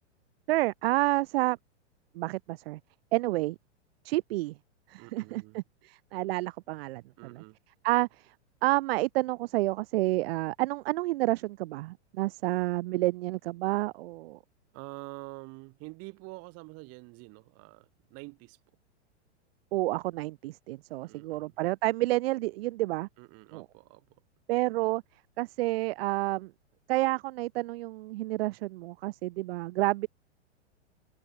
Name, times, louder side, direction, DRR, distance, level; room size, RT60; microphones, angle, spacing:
voice 1, 0.5-1.6 2.2-2.8 3.1-3.6 4.0-4.5 4.9-7.0 7.3-7.4 7.8-8.1 8.6-14.4 19.7-23.1 23.5-23.7 24.5-25.0 25.4-26.5 26.9-30.1, right 19 dB, 60° right, 0.6 m, -29 dB
voice 2, 4.9-5.6 7.2-7.6 14.7-18.6 21.0-21.6 23.2-24.1, right 28 dB, 45° right, 2.7 m, -46 dB
hypercardioid pair, 125°, 35 cm